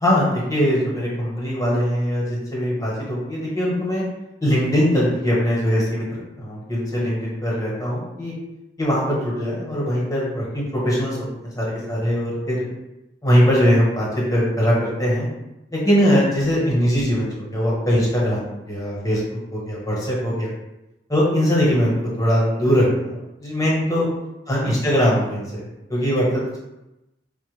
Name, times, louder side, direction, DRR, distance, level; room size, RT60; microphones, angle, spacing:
voice 1, 0.0-4.0 4.4-8.3 8.8-12.6 13.2-15.3 15.7-20.5 21.1-24.1 24.5-25.6 25.9-26.6, equal, 20° left, -6 dB, 1.1 m, -21 dB
4.5 x 2.1 x 3.2 m, 0.95 s
head